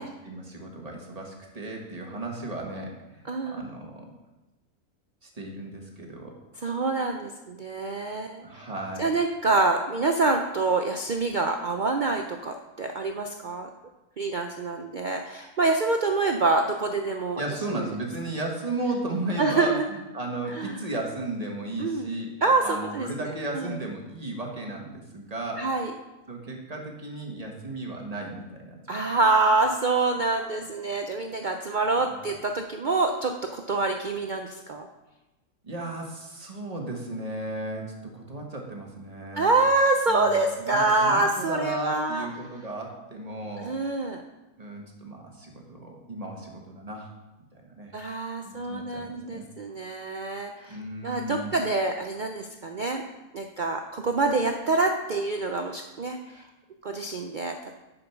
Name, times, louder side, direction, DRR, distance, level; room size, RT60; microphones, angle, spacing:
voice 1, 0.0-4.1 5.2-6.3 8.4-9.1 17.4-22.3 22.6-25.7 26.3-29.0 32.1-32.2 35.6-39.7 40.1-43.8 44.6-47.1 47.5-47.9 48.4-49.5 50.7-51.5, right 2 dB, 25° right, 0 dB, 1.4 m, -35 dB
voice 2, 3.3-3.6 6.6-8.6 9.0-13.7 14.2-17.4 17.8-17.9 19.4-19.8 20.5-20.8 21.8-22.1 22.4-23.1 23.5-23.7 25.6-25.9 28.9-34.9 39.4-42.3 43.6-44.2 47.9-50.8 51.0-53.0 53.3-56.4 56.8-57.7, right 3 dB, 75° right, 4 dB, 0.4 m, -26 dB
9.0 x 5.6 x 5.8 m, 1.0 s
omnidirectional pair, 1.6 m